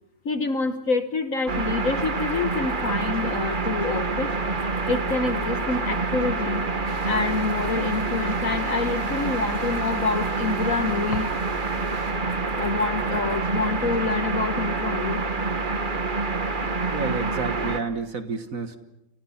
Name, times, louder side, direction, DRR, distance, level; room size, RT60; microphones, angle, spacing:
voice 1, 0.2-4.3 4.9-6.6 7.0-11.3 12.5-15.2, left 4 dB, 50° left, 10 dB, 1.4 m, -27 dB
sound 1, 1.5-17.8, right 3 dB, 30° right, 1.3 m, -27 dB
sound 2, 1.8-14.2, left 2 dB, 20° left, 1.7 m, -45 dB
sound 3, 6.8-12.1, right 2 dB, 85° right, 5.5 m, -46 dB
voice 2, 16.9-18.8, right 4 dB, 45° right, 9 dB, 1.7 m, -30 dB
28.5 x 28.0 x 5.8 m, 0.88 s
omnidirectional pair, 2.1 m